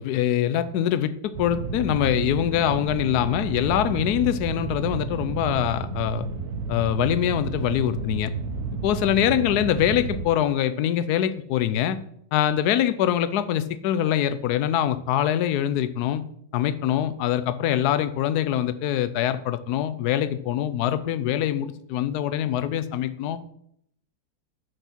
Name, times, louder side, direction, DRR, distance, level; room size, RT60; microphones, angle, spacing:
voice 1, 0.0-6.3 6.7-8.3 8.8-12.0 12.3-16.2 16.5-23.4, left 11 dB, 70° left, 13 dB, 1.0 m, -24 dB
sound 1, 1.3-10.3, right 5 dB, 65° right, 1.4 m, -31 dB
6.3 x 5.1 x 5.9 m, 0.70 s
omnidirectional pair, 1.9 m